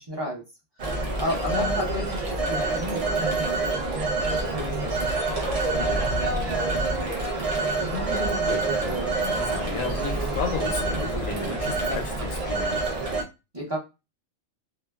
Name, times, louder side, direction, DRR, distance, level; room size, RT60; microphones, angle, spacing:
voice 1, 0.1-0.4 1.2-2.1 2.5-7.5 11.8-12.0 13.5-13.8, equal, 25° right, -3 dB, 0.7 m, -34 dB
Telephone, 0.8-13.2, right 2 dB, 55° right, 0.4 m, -27 dB
voice 2, 1.5-1.8 7.8-12.9, left 5 dB, 85° left, 5 dB, 1.0 m, -34 dB
2.8 x 2.2 x 2.2 m, 0.26 s
omnidirectional pair, 1.4 m